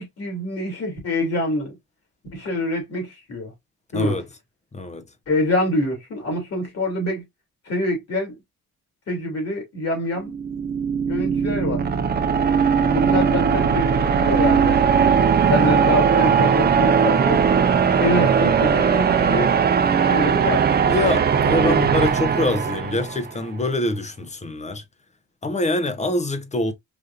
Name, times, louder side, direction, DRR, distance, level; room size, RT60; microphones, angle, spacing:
voice 1, 0.0-1.7 2.3-3.5 3.9-4.2 5.3-7.2 7.7-8.4 9.1-10.4 11.1-11.8 12.8-17.4 18.0-19.6 20.0-20.6 21.6-21.8, left 1 dB, 55° left, 2.8 m, -25 dB
voice 2, 3.9-4.2 4.7-5.0 20.9-24.8 25.4-26.7, left 2 dB, 25° left, 0.8 m, -24 dB
sound 1, 10.2-23.3, right 7 dB, 35° right, 0.6 m, -19 dB
5.0 x 2.7 x 2.5 m
cardioid pair, 90°, 30 cm